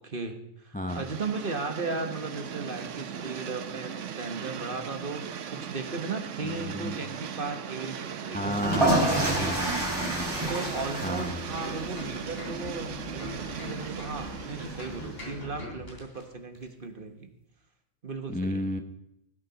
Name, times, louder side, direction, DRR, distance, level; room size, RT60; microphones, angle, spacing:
voice 1, 0.0-9.8 10.5-17.3 18.0-18.6, right 3 dB, 40° right, 6 dB, 1.5 m, -36 dB
sound 1, 0.9-15.4, right 8 dB, 60° right, 1.1 m, -38 dB
voice 2, 6.4-7.0 8.3-10.4 11.0-11.4 18.3-18.8, equal, 10° left, 7 dB, 0.4 m, -32 dB
sound 2, 8.4-15.2, right 2 dB, 20° right, 5.7 m, -30 dB
sound 3, 10.0-16.2 16.5-16.7, left 1 dB, 40° left, 3.7 m, -42 dB
18.5 x 8.8 x 5.3 m, 0.85 s
omnidirectional pair, 1.5 m